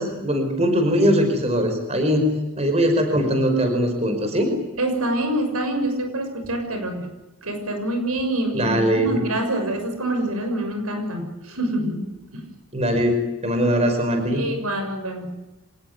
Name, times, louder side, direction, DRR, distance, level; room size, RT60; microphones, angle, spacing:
voice 1, 0.0-2.3 2.6-4.5 8.5-9.2 12.7-14.6, equal, 30° right, 5 dB, 5.1 m, -21 dB
voice 2, 4.8-7.1 7.4-12.0 12.3-12.5 14.3-15.3, right 1 dB, 80° right, 6 dB, 6.5 m, -26 dB
26.0 x 19.5 x 9.5 m, 0.99 s
head